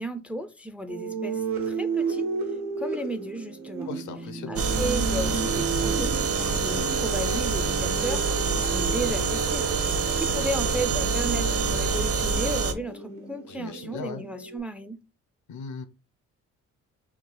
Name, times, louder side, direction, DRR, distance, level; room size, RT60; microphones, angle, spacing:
voice 1, 0.0-2.3 2.8-3.9 4.5-15.0, right 1 dB, 5° right, 0.4 m, -34 dB
sound 1, 0.9-14.6, right 4 dB, 80° right, 1.2 m, -34 dB
voice 2, 3.9-4.6 13.5-14.2 15.5-15.8, left 6 dB, 75° left, 0.7 m, -38 dB
sound 2, 4.6-12.7, right 4 dB, 50° right, 0.8 m, -26 dB
3.6 x 2.4 x 4.5 m
cardioid pair, 90°, 30 cm